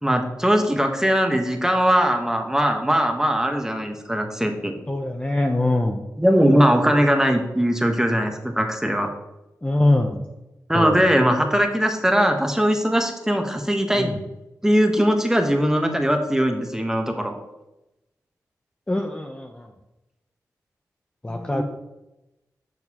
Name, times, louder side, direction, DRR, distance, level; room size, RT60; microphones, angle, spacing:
voice 1, 0.0-4.7 6.2-9.1 10.7-14.1 14.6-17.3 21.3-21.6, equal, 10° right, 4 dB, 1.1 m, -20 dB
voice 2, 4.9-6.0 9.6-10.2 10.7-11.0 13.9-14.1 18.9-19.7 21.2-21.6, left 2 dB, 15° left, 2 dB, 0.7 m, -23 dB
6.4 x 6.4 x 2.9 m, 0.95 s
cardioid pair, 50°, 7 cm